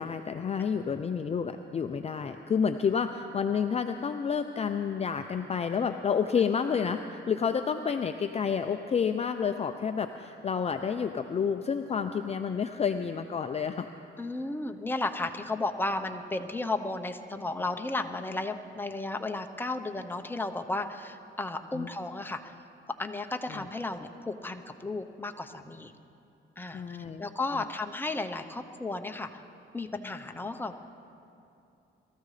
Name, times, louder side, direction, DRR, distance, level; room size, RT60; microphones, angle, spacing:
voice 1, 0.0-13.9 21.7-21.9 23.5-23.6 26.7-27.2 27.5-27.6, left 6 dB, 30° left, 7 dB, 0.5 m, -29 dB
voice 2, 14.2-22.5 23.0-25.9 26.6-29.3 29.7-30.8, left 2 dB, 10° left, 5 dB, 0.8 m, -34 dB
22.0 x 14.0 x 3.3 m, 2.7 s
cardioid pair, 90°, 20 cm